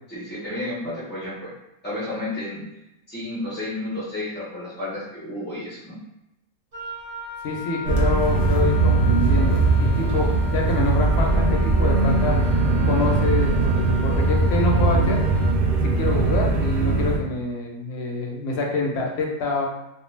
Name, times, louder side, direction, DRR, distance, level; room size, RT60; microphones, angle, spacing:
voice 1, 0.1-1.5 1.8-2.6 3.1-6.0, left 1 dB, 15° left, -9 dB, 0.4 m, -31 dB
Wind instrument woodwind instrument, 6.7-15.6, left 2 dB, 55° right, 0.7 m, -38 dB
voice 2, 7.4-12.5 12.9-15.2 15.8-19.7, left 2 dB, 65° left, 0 dB, 0.8 m, -26 dB
sound 1, 7.8-17.2, right 3 dB, 80° right, 0.4 m, -20 dB
2.3 x 2.2 x 3.1 m, 0.90 s
omnidirectional pair, 1.4 m